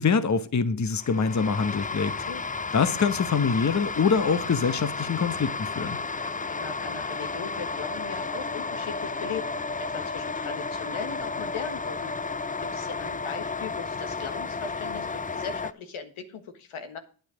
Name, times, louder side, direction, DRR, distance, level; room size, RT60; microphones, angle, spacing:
voice 1, 0.0-2.1 2.7-6.0, left 5 dB, 35° left, 1.0 m, -24 dB
sound 1, 1.0-15.7, left 4 dB, 15° left, 0.5 m, -32 dB
voice 2, 6.2-12.1 12.6-17.0, left 6 dB, 80° left, 1.5 m, -38 dB
9.1 x 8.0 x 5.0 m
supercardioid pair, 50°, 49 cm